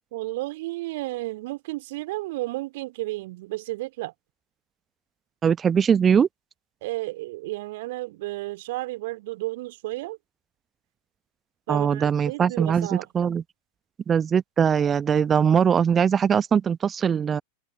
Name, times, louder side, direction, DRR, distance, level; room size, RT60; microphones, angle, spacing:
voice 1, 0.1-4.1 6.8-10.2 11.7-13.1, right 19 dB, 50° right, 2.3 m, -32 dB
voice 2, 5.4-6.3 11.7-13.4 14.1-17.4, right 7 dB, 20° right, 0.9 m, -21 dB
figure-of-eight pair, 90°, 0 cm